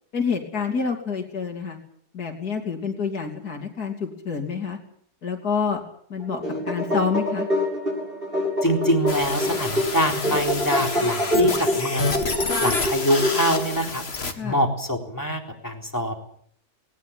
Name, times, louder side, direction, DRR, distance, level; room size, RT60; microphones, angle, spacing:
voice 1, 0.1-1.8 2.1-4.8 5.2-5.8 6.1-7.5 14.4-14.6, left 5 dB, 70° left, 2 dB, 3.5 m, -27 dB
sound 1, 6.2-13.8, left 1 dB, 35° right, 7.5 m, -26 dB
voice 2, 8.6-12.1 12.6-14.0 14.4-16.2, equal, 10° left, 2 dB, 3.9 m, -24 dB
sound 2, 9.1-14.3, left 3 dB, 40° left, 2.3 m, -28 dB
20.5 x 19.0 x 8.8 m, 0.64 s
omnidirectional pair, 1.7 m